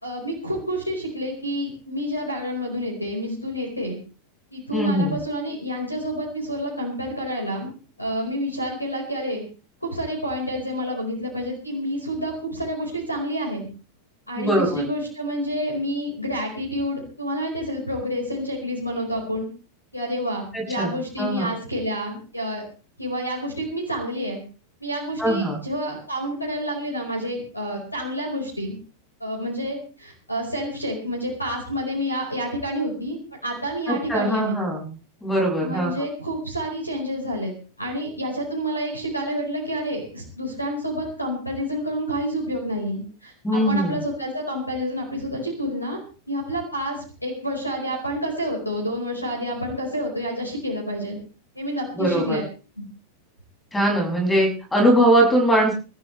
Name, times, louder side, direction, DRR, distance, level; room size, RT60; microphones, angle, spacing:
voice 1, 0.0-4.0 4.5-7.7 8.0-9.4 9.8-13.7 14.3-19.5 19.9-22.6 23.0-24.4 24.8-28.7 29.2-34.6 35.6-37.5 37.8-46.0 46.3-51.2 51.5-52.4 52.8-52.9, equal, 85° left, 1 dB, 4.8 m, -29 dB
voice 2, 4.7-5.1 14.4-14.8 20.5-20.9 21.2-21.5 25.2-25.6 33.9-34.9 35.2-35.9 43.4-44.0 52.0-52.4 53.7-55.7, right 1 dB, 10° left, 1 dB, 7.0 m, -21 dB
25.0 x 14.0 x 3.3 m, 0.36 s
figure-of-eight pair, 90°, 0 cm